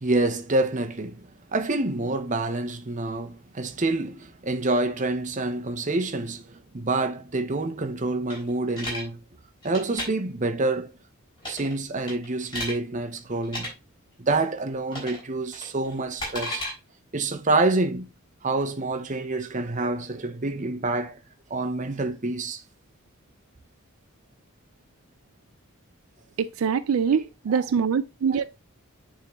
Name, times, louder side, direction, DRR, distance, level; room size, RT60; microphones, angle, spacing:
voice 1, 0.0-9.2 9.6-10.9 11.5-13.7 14.2-16.6 17.1-18.1 18.4-21.2 21.5-22.6 27.5-27.6 28.3-28.4, right 2 dB, 35° right, 0.8 m, -27 dB
sound 1, 8.3-9.0 9.6-10.1 11.4-11.7 12.1-12.7 13.4-13.7 14.9-15.2 15.5-16.7, left 1 dB, 20° left, 4.5 m, -33 dB
voice 2, 26.4-28.4, right 6 dB, 70° right, 0.4 m, -24 dB
9.6 x 3.7 x 3.0 m
head